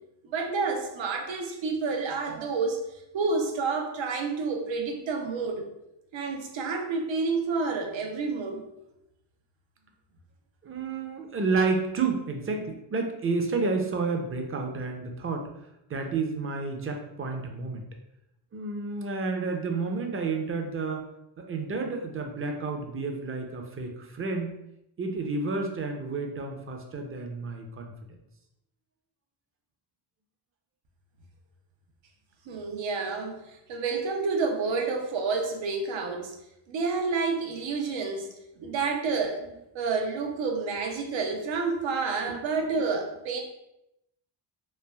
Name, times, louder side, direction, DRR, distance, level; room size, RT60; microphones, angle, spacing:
voice 1, 0.2-2.8 3.1-5.7 6.1-8.6 32.5-36.3 36.7-38.3 38.6-39.5 39.7-43.4, right 4 dB, 80° right, 3 dB, 0.6 m, -29 dB
voice 2, 10.6-15.5 15.9-17.8 18.5-21.0 21.4-24.5 25.0-27.9 42.3-42.4, right 4 dB, 30° right, 3 dB, 0.4 m, -30 dB
3.2 x 2.3 x 2.2 m, 0.85 s
cardioid pair, 85°, 45 cm